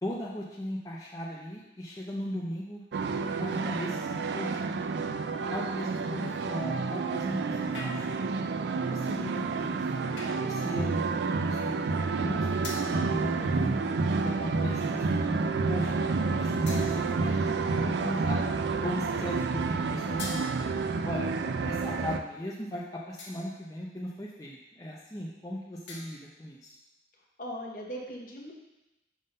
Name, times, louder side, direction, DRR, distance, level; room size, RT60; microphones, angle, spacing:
voice 1, 0.0-2.8 3.4-4.7 5.5-8.2 8.6-9.9 10.4-12.5 12.8-13.7 14.2-16.1 16.4-18.4 18.8-20.5 21.0-21.3 21.6-26.7, equal, 20° left, -4 dB, 0.5 m, -38 dB
sound 1, 2.9-22.2, right 4 dB, 75° right, 0.4 m, -29 dB
sound 2, 7.7-8.4 10.2-10.6 12.6-13.1 14.2-14.6 15.2-15.4 16.7-17.3 20.2-21.0 23.2-23.7 25.9-26.4, left 2 dB, 90° left, 1.2 m, -43 dB
voice 2, 27.4-28.5, equal, 50° left, -1 dB, 1.1 m, -39 dB
5.4 x 3.7 x 5.3 m, 0.94 s
head